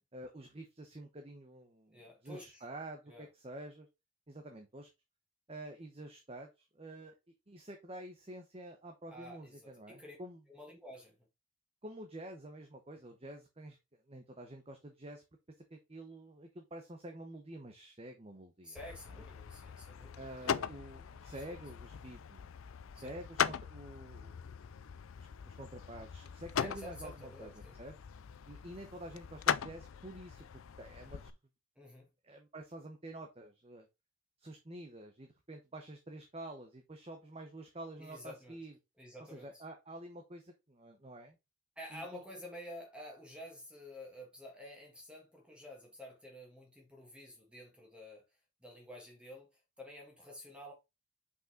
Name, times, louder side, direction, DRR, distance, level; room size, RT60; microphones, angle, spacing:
voice 1, 0.1-3.9 4.3-4.9 5.5-7.1 7.5-10.4 11.8-13.8 14.1-15.2 15.7-18.8 19.1-19.2 20.2-22.5 22.9-24.4 25.2-27.5 27.8-28.0 28.5-30.5 30.8-31.3 32.2-33.9 34.4-38.7 39.2-41.4 41.9-42.2, right 1 dB, 30° right, 0.8 m, -48 dB
voice 2, 1.9-2.6 3.1-3.3 9.1-10.2 10.5-11.2 18.6-21.1 21.5-21.6 23.0-23.1 26.6-27.8 31.8-32.1 38.0-38.6 39.0-39.6 41.8-48.2 48.6-50.7, left 1 dB, 5° right, 1.7 m, -50 dB
sound 1, 18.8-31.3, left 8 dB, 75° left, 0.4 m, -40 dB
5.5 x 5.3 x 3.7 m
head